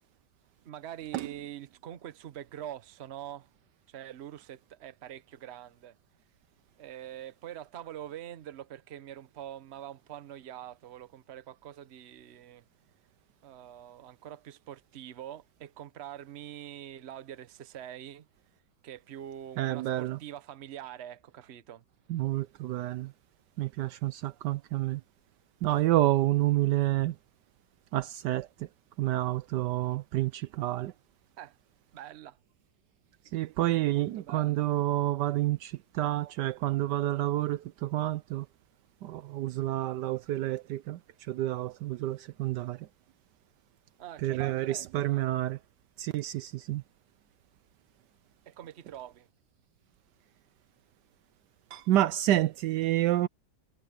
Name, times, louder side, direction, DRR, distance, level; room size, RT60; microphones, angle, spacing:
voice 1, 0.6-3.5 3.9-5.9 6.8-12.6 13.4-18.3 18.8-21.8 31.4-31.6 31.9-32.4 33.9-34.7 44.0-45.3 48.5-49.3, right 11 dB, 45° right, 0.9 m, -44 dB
voice 2, 19.6-20.2 22.1-23.1 23.6-25.0 25.6-27.2 27.9-28.7 29.0-30.9 33.3-38.5 39.0-41.0 41.3-42.9 44.2-45.6 46.0-46.8 51.7-53.3, right 15 dB, 75° right, 1.1 m, -29 dB
omnidirectional pair, 2.0 m